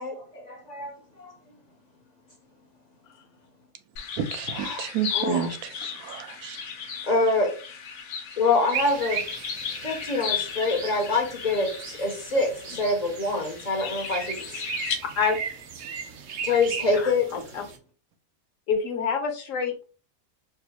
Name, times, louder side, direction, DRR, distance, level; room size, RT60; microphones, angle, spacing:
voice 1, 0.0-1.3 4.5-5.5 7.0-7.5 8.4-9.2 9.8-14.6 16.4-17.3, left 3 dB, 40° left, 0.6 m, -26 dB
sound 1, 4.0-15.0, left 7 dB, 85° left, 1.1 m, -36 dB
voice 2, 4.2-6.6, right 9 dB, 90° right, 1.0 m, -31 dB
sound 2, 8.7-17.8, right 6 dB, 70° right, 0.9 m, -37 dB
voice 3, 17.0-17.6 18.7-19.8, left 6 dB, 70° left, 1.2 m, -27 dB
4.5 x 2.0 x 2.9 m
omnidirectional pair, 1.5 m